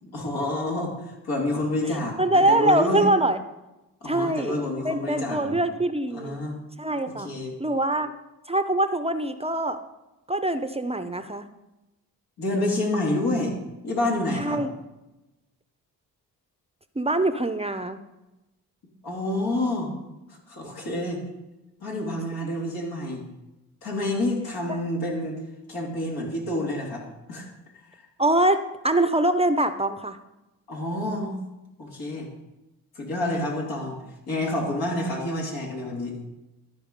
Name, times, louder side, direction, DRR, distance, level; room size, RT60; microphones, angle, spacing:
voice 1, 0.0-3.1 4.0-5.6 6.1-6.6 7.2-7.5 12.4-13.6 13.8-14.6 19.0-19.9 20.3-21.2 21.8-23.2 23.8-25.4 25.7-27.5 27.9-28.0 30.7-31.4 31.8-32.3 32.9-34.0 34.3-36.2, left 1 dB, 80° left, -2 dB, 2.7 m, -28 dB
voice 2, 2.2-3.4 4.1-4.6 4.8-6.4 6.8-7.3 7.6-8.1 8.5-9.8 10.3-11.5 14.4-14.7 17.0-18.0 28.2-28.6 28.8-30.2, right 1 dB, 15° right, 10 dB, 0.6 m, -23 dB
12.5 x 4.7 x 5.2 m, 1.0 s
cardioid pair, 65°, 37 cm